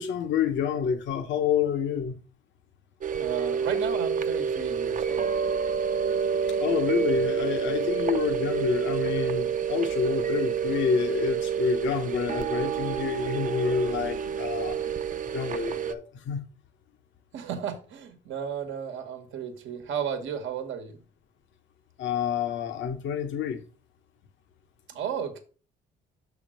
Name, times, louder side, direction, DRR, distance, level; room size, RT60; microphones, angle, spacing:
voice 1, 0.0-2.2 6.6-14.8 15.3-16.4 22.0-23.6, left 7 dB, 70° left, 0.8 m, -28 dB
sound 1, 3.0-15.9, right 7 dB, 40° right, 0.6 m, -28 dB
voice 2, 3.2-5.3 17.3-21.0 24.9-25.4, right 8 dB, 75° right, 1.1 m, -34 dB
6.3 x 3.6 x 6.1 m
cardioid pair, 90°, 20 cm